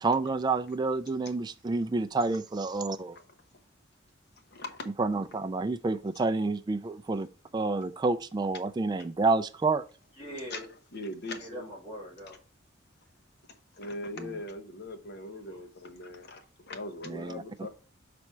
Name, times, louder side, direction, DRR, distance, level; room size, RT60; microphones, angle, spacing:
voice 1, 0.0-3.2 5.0-7.3 7.5-9.8 17.1-17.4, right 3 dB, 20° right, 0.3 m, -29 dB
voice 2, 4.5-4.9 10.5-10.7 10.9-11.7 13.7-17.7, left 2 dB, 55° left, 0.9 m, -40 dB
voice 3, 10.2-10.7 11.3-12.4 15.5-15.6, equal, 35° left, 3.0 m, -42 dB
6.1 x 4.2 x 4.5 m
head